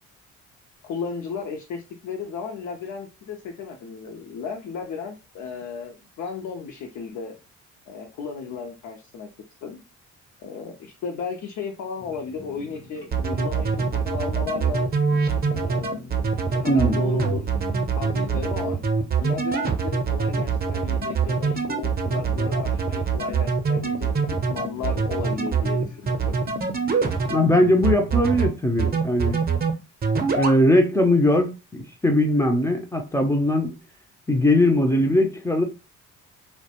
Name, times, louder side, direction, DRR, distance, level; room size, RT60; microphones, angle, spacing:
voice 1, 0.8-7.4 7.9-9.3 9.6-9.8 10.4-14.9 15.5-16.0 16.5-17.5 18.0-18.8 19.2-26.4, left 5 dB, 70° left, 0.6 m, -34 dB
sound 1, 12.0-28.5, left 1 dB, 85° left, 1.0 m, -44 dB
sound 2, 13.1-27.5 27.8-28.5 28.8-29.7 30.0-30.6, right 5 dB, 30° right, 0.6 m, -23 dB
voice 2, 16.7-17.0 27.3-29.4 30.3-33.7 34.3-35.6, left 1 dB, 10° left, 0.4 m, -20 dB
2.3 x 2.1 x 2.8 m
cardioid pair, 90°, 30 cm